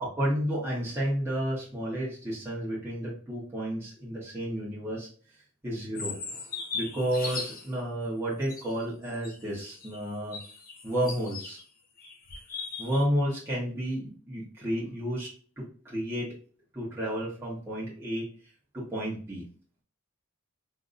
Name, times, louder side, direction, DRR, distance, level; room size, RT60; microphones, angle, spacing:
voice 1, 0.0-5.1 5.6-6.2 6.7-10.4 10.8-11.6 12.8-16.3 16.7-18.3 18.7-19.4, equal, 10° right, -7 dB, 1.1 m, -31 dB
sound 1, 5.9-7.7 8.4-11.6 12.0-13.0, left 4 dB, 45° left, 0.8 m, -38 dB
3.8 x 2.8 x 2.5 m, 0.42 s
head